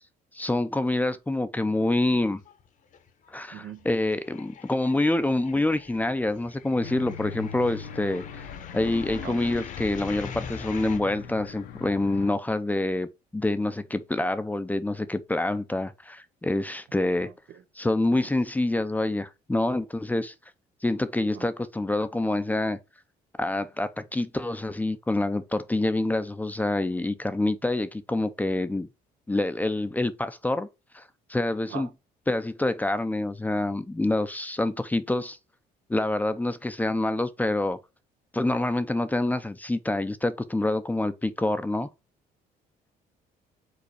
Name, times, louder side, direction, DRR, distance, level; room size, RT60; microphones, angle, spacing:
voice 1, 0.3-2.4 3.3-8.5 8.7-17.3 17.8-20.3 20.8-22.8 23.4-28.9 29.3-30.7 30.9-31.0 31.3-31.9 32.3-35.4 35.9-37.8 38.3-41.9, left 2 dB, 10° left, 0.6 m, -26 dB
sound 1, 2.0-2.7 2.9-11.0, left 7 dB, 50° left, 1.0 m, -43 dB
voice 2, 3.5-3.9 9.2-9.4 16.9-17.6 21.3-21.5 31.7-31.9, right 10 dB, 70° right, 0.8 m, -42 dB
sound 2, 6.8-12.3, left 7 dB, 85° left, 1.2 m, -41 dB
5.1 x 4.0 x 4.8 m
cardioid pair, 110°, 17 cm